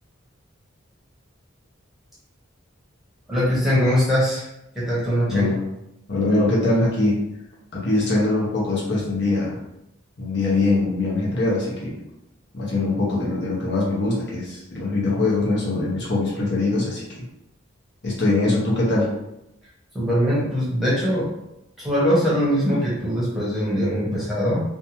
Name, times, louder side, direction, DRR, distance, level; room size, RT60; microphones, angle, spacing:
voice 1, 3.3-4.5 4.7-5.5 19.9-21.3 21.8-24.6, equal, ahead, -9 dB, 0.9 m, -21 dB
voice 2, 5.3-5.6 6.1-7.3 7.7-9.6 10.2-11.9 12.5-17.0 18.0-19.1, left 2 dB, 55° left, -5 dB, 0.8 m, -22 dB
2.6 x 2.2 x 2.9 m, 0.85 s
head